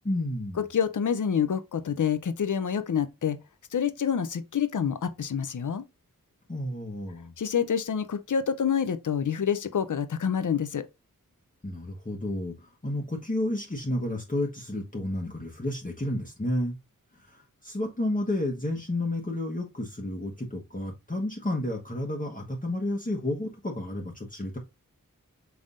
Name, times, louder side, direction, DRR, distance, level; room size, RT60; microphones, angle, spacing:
voice 1, 0.0-0.6 6.5-7.3 11.6-16.8 17.2-24.6, left 1 dB, 25° left, 1.2 m, -31 dB
voice 2, 0.6-3.4 3.7-5.8 7.4-10.8, left 7 dB, 65° left, 0.6 m, -27 dB
5.3 x 3.5 x 2.6 m
wide cardioid pair, 50°, 34 cm